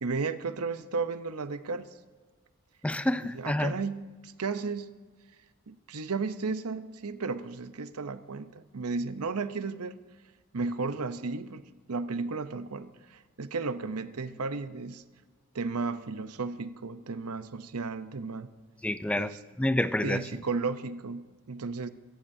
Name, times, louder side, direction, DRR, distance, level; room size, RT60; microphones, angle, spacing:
voice 1, 0.0-1.9 3.3-5.0 5.7-10.0 10.5-11.6 11.9-15.0 15.5-18.5 19.2-19.4 20.0-21.9, right 4 dB, 90° right, 0.8 m, -34 dB
voice 2, 2.8-3.8 18.8-20.3, left 1 dB, 5° left, 0.3 m, -28 dB
25.5 x 14.0 x 2.7 m
head